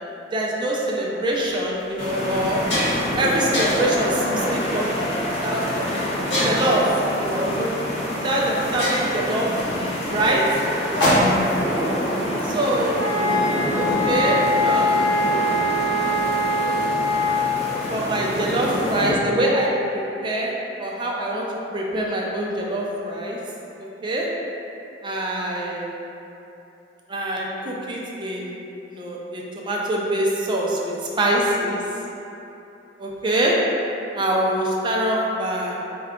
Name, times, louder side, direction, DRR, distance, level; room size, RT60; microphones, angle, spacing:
voice 1, 0.3-2.6 3.2-4.9 5.4-6.0 6.4-6.9 7.2-7.7 8.2-9.5 10.1-10.4 12.4-12.9 13.8-15.6 17.9-20.5 20.8-21.5 21.7-23.4 23.8-24.3 25.0-25.9 27.1-28.5 28.9-31.8 33.0-33.6 34.1-35.7, right 1 dB, 25° right, -3 dB, 0.4 m, -24 dB
sound 1, 1.3-1.4 2.0-2.1 2.4-3.1 3.5-4.0 4.7-5.0 6.3-6.8 8.0-8.1 8.4-8.5 8.8-11.6, equal, 70° left, 1.1 m, -24 dB
sound 2, 2.0-19.1, equal, 35° left, 0.5 m, -27 dB
sound 3, 13.0-17.7, left 1 dB, 10° right, 1.1 m, -22 dB
4.2 x 2.3 x 3.6 m, 2.9 s
head